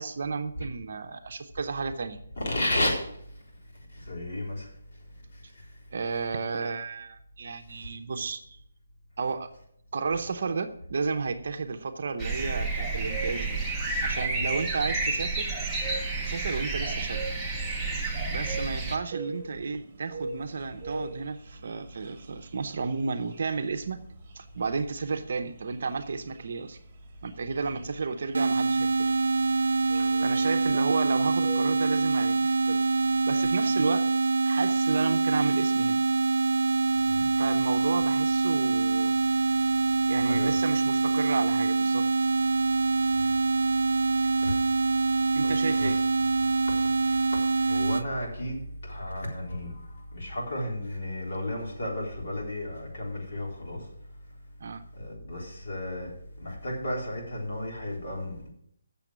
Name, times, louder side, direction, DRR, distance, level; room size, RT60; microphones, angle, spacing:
voice 1, 0.0-2.2 5.9-8.6 9.2-9.5 9.9-13.6 14.0-15.5 16.3-17.2 18.3-24.0 24.4-26.8 27.2-29.1 29.5-32.8 33.3-34.0 34.5-36.0 37.4-39.7 40.1-42.0 45.3-46.0 54.6-54.8, right 4 dB, 45° right, 0.8 m, -32 dB
voice 2, 2.4-3.0 3.3-3.4 3.9-4.7 5.3-5.7 7.7-7.9 14.3-14.5 18.1-18.4 36.9-37.3 40.1-40.6 43.1-43.4 44.2-44.6 45.4-46.0 46.4-53.9 54.9-58.5, left 1 dB, 50° left, 3.8 m, -34 dB
sound 1, 12.2-19.0, right 3 dB, ahead, 0.9 m, -30 dB
sound 2, 19.1-32.0, right 2 dB, 25° right, 1.4 m, -45 dB
sound 3, 28.3-48.1, right 3 dB, 75° right, 0.4 m, -25 dB
7.4 x 7.0 x 8.1 m
hypercardioid pair, 175°, 0 cm